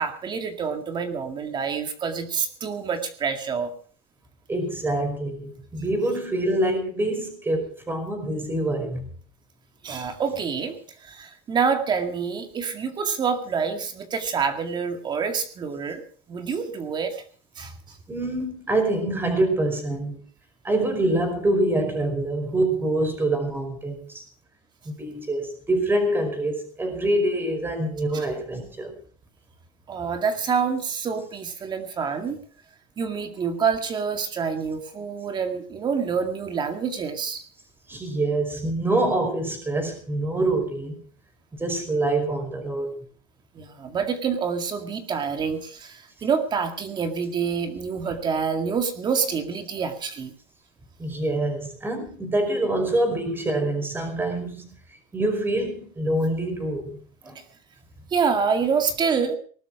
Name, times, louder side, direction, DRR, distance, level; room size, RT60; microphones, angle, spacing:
voice 1, 0.0-3.7 9.8-16.0 16.3-17.2 17.6-18.0 28.1-28.3 29.9-32.4 33.0-37.4 43.5-50.3 58.1-59.4, right 6 dB, 30° right, 7 dB, 2.1 m, -27 dB
voice 2, 4.5-9.1 18.1-20.2 20.6-24.2 24.8-28.9 37.9-41.0 41.6-42.9 51.0-54.7 55.1-57.0 57.2-57.3, right 1 dB, 15° right, 7 dB, 5.0 m, -25 dB
19.5 x 12.0 x 4.9 m, 0.44 s
cardioid pair, 135°, 15 cm